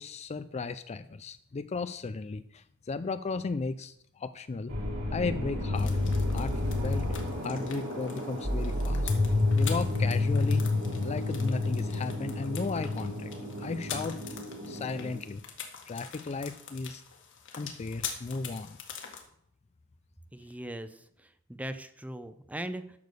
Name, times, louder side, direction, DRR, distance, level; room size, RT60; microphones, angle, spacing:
voice 1, 0.0-4.7 5.1-6.0 6.3-9.1 9.5-10.7 11.0-14.2 14.7-15.4 15.9-17.0 17.5-18.8, left 4 dB, 30° left, 12 dB, 0.4 m, -35 dB
sound 1, 4.7-15.2, left 2 dB, 75° right, 3.4 m, -30 dB
sound 2, 5.7-19.2, left 7 dB, 60° left, 1.9 m, -45 dB
voice 2, 20.3-21.0 21.5-23.0, right 1 dB, 5° right, 10 dB, 0.6 m, -39 dB
10.5 x 6.9 x 6.5 m, 0.71 s
head